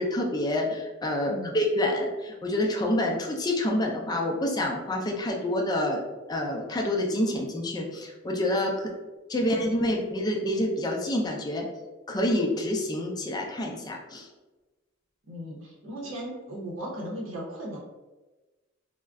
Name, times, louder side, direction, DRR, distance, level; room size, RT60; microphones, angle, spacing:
voice 1, 0.0-6.0 6.3-8.9 9.3-11.7 12.1-14.3, left 1 dB, 20° left, 0 dB, 0.4 m, -27 dB
voice 2, 15.3-17.8, equal, 75° right, -4 dB, 0.7 m, -37 dB
2.4 x 2.1 x 3.4 m, 1.2 s
head